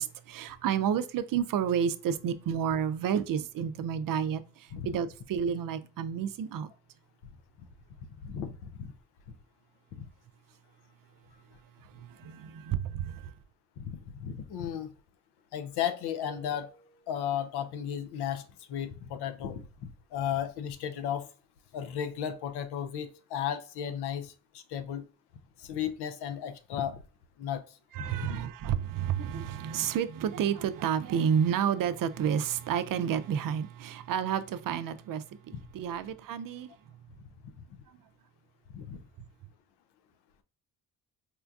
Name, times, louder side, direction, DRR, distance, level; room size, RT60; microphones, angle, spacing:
voice 1, 0.0-6.7 12.0-13.3 27.9-36.7, right 8 dB, 55° right, 0.5 m, -30 dB
voice 2, 8.2-8.9 9.9-10.1 13.8-14.9 15.5-16.7 17.1-21.3 21.7-25.1 25.6-27.0 27.4-27.6 28.0-28.4 35.5-35.6 38.7-39.0, left 9 dB, 80° left, 0.6 m, -35 dB
sound 1, 16.2-17.4, equal, 40° left, 0.9 m, -53 dB
4.3 x 2.2 x 2.4 m
supercardioid pair, 55°, 39 cm